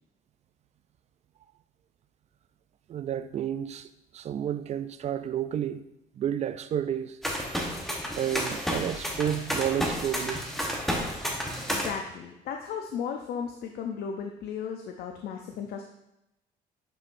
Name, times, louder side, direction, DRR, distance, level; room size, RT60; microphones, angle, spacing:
voice 1, 2.9-3.9 4.1-5.8 6.2-7.2 8.1-10.4, right 10 dB, 40° right, 0.4 m, -31 dB
sound 1, 7.2-11.9, equal, ahead, 1.1 m, -31 dB
voice 2, 11.7-15.8, left 7 dB, 70° left, 0.6 m, -35 dB
8.8 x 4.5 x 2.6 m
cardioid pair, 110°, 17 cm